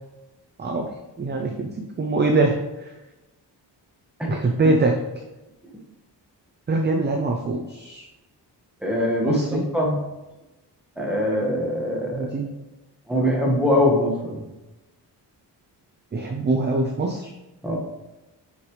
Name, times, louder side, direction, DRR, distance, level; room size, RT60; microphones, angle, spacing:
voice 1, 0.6-0.9 1.2-1.7 2.0-2.9 4.3-4.9 6.7-8.0 9.2-9.6 12.1-12.5 16.1-17.3, right 3 dB, 25° right, 2 dB, 0.5 m, -23 dB
voice 2, 8.8-10.0 11.0-12.3 13.1-14.4 17.6-17.8, left 1 dB, 5° right, -2 dB, 1.3 m, -22 dB
5.8 x 5.6 x 3.1 m, 1.0 s
wide cardioid pair, 165°, 41 cm